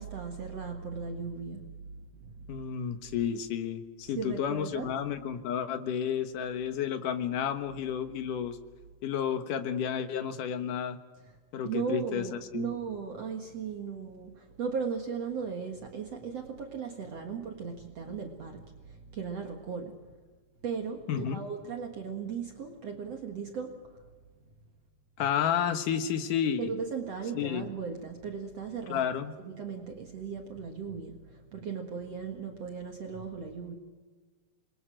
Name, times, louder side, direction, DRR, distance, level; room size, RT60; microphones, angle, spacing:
voice 1, 0.0-1.8 2.1-2.2 4.1-4.9 11.6-20.0 20.6-23.8 26.6-29.1 29.4-33.8, right 6 dB, 55° right, 3 dB, 2.5 m, -37 dB
voice 2, 2.5-8.6 9.0-11.0 11.5-12.7 21.1-21.5 25.2-26.7 27.3-27.7 28.9-29.4, left 8 dB, 70° left, 9 dB, 2.8 m, -31 dB
28.0 x 22.0 x 6.5 m, 1.3 s
omnidirectional pair, 4.0 m